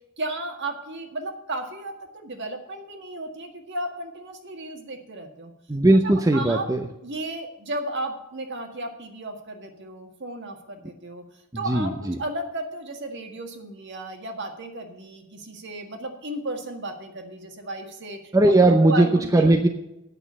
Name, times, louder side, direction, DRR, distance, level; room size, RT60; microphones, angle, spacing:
voice 1, 0.2-5.5 6.0-6.7 7.0-11.2 11.5-18.3 18.6-19.7, right 2 dB, 55° right, 4 dB, 1.8 m, -34 dB
voice 2, 5.7-6.8 11.7-12.2 18.3-19.1 19.3-19.7, right 2 dB, 15° right, 4 dB, 0.6 m, -18 dB
9.2 x 6.3 x 8.6 m, 0.91 s
head